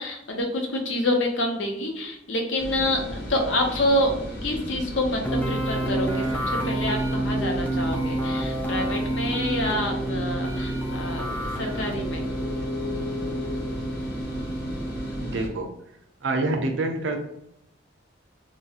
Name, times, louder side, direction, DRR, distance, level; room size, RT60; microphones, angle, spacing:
voice 1, 0.0-4.1 4.4-6.3 6.6-12.3, left 1 dB, 85° left, 2 dB, 0.7 m, -27 dB
sound 1, 2.6-15.5, left 1 dB, 50° left, 0.7 m, -34 dB
sound 2, 5.2-15.2, right 1 dB, 10° left, 0.4 m, -29 dB
voice 2, 15.2-15.7 16.2-17.2, right 2 dB, 80° right, 5 dB, 0.5 m, -26 dB
3.0 x 2.3 x 2.8 m, 0.77 s
head